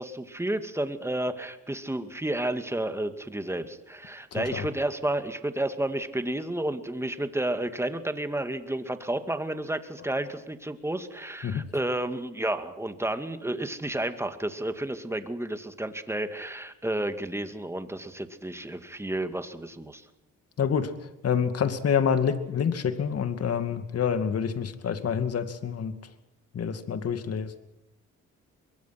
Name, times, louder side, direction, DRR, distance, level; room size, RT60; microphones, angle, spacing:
voice 1, 0.0-20.1, right 1 dB, 10° right, 8 dB, 2.3 m, -31 dB
voice 2, 4.3-4.7 11.4-11.7 20.6-20.9 21.2-26.0 26.5-27.5, left 7 dB, 55° left, 9 dB, 2.4 m, -27 dB
25.0 x 22.5 x 6.0 m, 0.93 s
cardioid pair, 90°, 30 cm